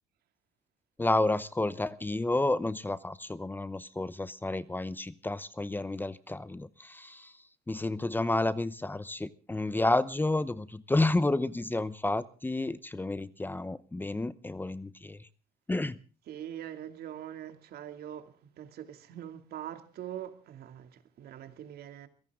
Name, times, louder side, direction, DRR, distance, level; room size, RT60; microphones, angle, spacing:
voice 1, 1.0-7.3 7.7-15.3 15.7-16.0, left 2 dB, 10° left, 0.8 m, -30 dB
voice 2, 16.3-18.3 18.6-22.1, right 10 dB, 65° right, 2.6 m, -43 dB
23.0 x 17.0 x 3.7 m
cardioid pair, 110°, 17 cm